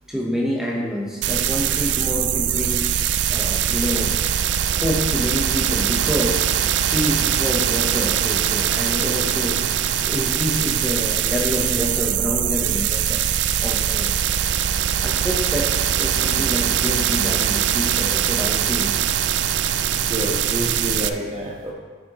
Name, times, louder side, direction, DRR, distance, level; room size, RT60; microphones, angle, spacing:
voice 1, 0.1-3.0 3.3-4.2 4.7-6.5 6.8-13.2 13.6-14.2 15.0-18.9, equal, 5° right, -2 dB, 1.0 m, -27 dB
sound 1, 1.2-21.1, right 9 dB, 65° right, 0.4 m, -22 dB
voice 2, 19.9-21.7, right 1 dB, 30° right, -3 dB, 1.2 m, -28 dB
11.0 x 6.5 x 3.1 m, 1.5 s
head